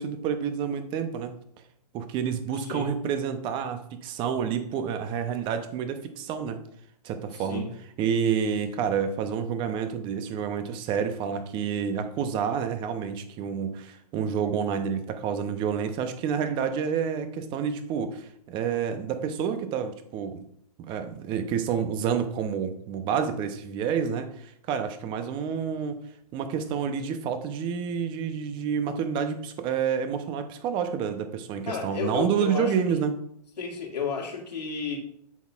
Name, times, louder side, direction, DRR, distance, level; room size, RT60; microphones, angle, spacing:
voice 1, 0.0-1.4 1.9-6.6 7.0-7.7 8.0-20.4 20.8-26.0 26.3-33.1, right 7 dB, 25° right, 9 dB, 0.6 m, -29 dB
voice 2, 2.5-2.9 7.3-7.7 31.7-32.8 33.6-35.0, left 5 dB, 85° left, -1 dB, 2.1 m, -32 dB
10.5 x 4.0 x 2.4 m, 0.68 s
hypercardioid pair, 135°, 21 cm